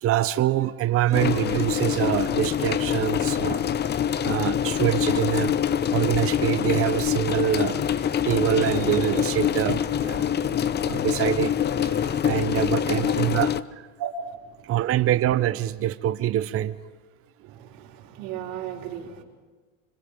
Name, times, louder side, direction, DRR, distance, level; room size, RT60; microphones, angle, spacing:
voice 1, 0.0-3.7 4.2-5.5 5.9-11.6 11.9-13.9 14.6-16.8, right 12 dB, 35° right, 12 dB, 0.8 m, -25 dB
sound 1, 1.1-13.6, left 9 dB, 25° left, 0.7 m, -25 dB
voice 2, 17.4-19.2, right 11 dB, 60° right, -4 dB, 4.5 m, -35 dB
25.5 x 25.0 x 5.1 m, 1.3 s
supercardioid pair, 105°, 38 cm